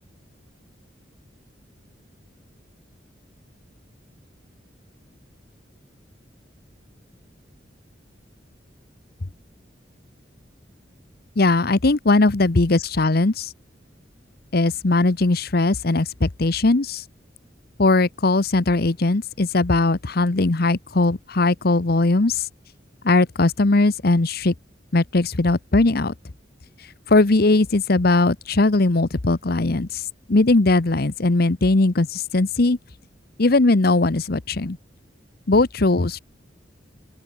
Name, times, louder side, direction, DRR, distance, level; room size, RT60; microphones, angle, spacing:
voice 1, 11.4-13.5 14.5-17.0 17.8-22.4 23.0-24.5 24.9-26.1 27.1-29.9 30.3-32.8 33.4-34.8 35.5-36.2, left 2 dB, 60° left, 1.0 m, -19 dB
open air
head